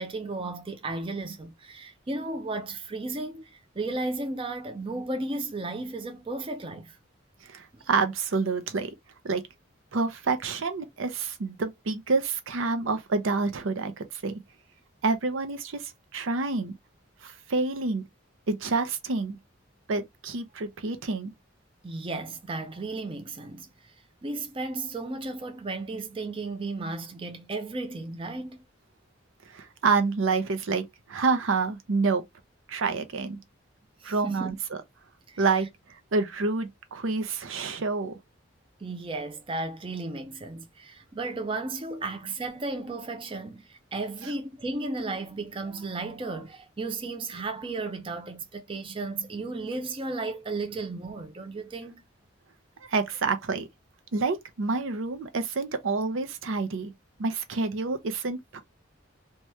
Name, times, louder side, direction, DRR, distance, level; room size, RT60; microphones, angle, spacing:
voice 1, 0.0-7.0 7.7-7.9 21.8-23.9 24.2-28.6 34.0-34.6 35.3-35.5 38.8-52.0, right 3 dB, 25° right, 0.5 m, -34 dB
voice 2, 7.4-8.9 9.2-9.4 9.9-14.4 15.0-16.7 17.2-18.0 18.5-19.4 19.9-21.3 29.5-32.2 32.7-33.4 34.0-34.6 35.4-35.7 36.1-38.2 52.9-53.7 54.1-56.9 57.2-58.6, right 4 dB, 80° right, 0.6 m, -28 dB
2.9 x 2.3 x 3.0 m
head